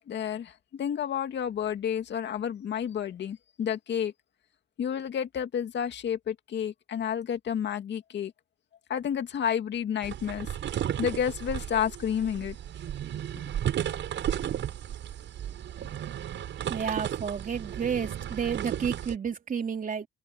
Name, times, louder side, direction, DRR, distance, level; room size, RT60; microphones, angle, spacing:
voice 1, 0.0-4.1 4.8-8.3 8.9-10.5 11.0-12.6 13.3-13.4, left 8 dB, 60° left, 2.3 m, -30 dB
sound 1, 10.0-19.2, right 10 dB, 70° right, 6.8 m, -34 dB
voice 2, 16.7-20.1, right 7 dB, 45° right, 3.1 m, -31 dB
cardioid pair, 90°, 20 cm